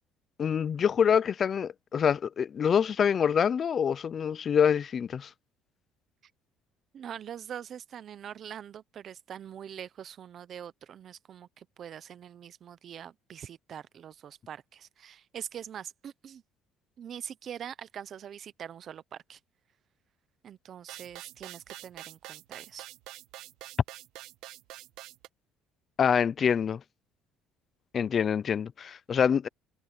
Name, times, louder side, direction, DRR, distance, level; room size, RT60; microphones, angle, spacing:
voice 1, 0.4-5.3 26.0-26.8 27.9-29.5, left 7 dB, 30° left, 0.4 m, -26 dB
voice 2, 6.9-16.4 17.0-19.4 20.4-22.9, right 9 dB, 35° right, 0.7 m, -43 dB
sound 1, 20.9-25.3, right 15 dB, 70° right, 1.3 m, -46 dB
cardioid pair, 165°, 0 cm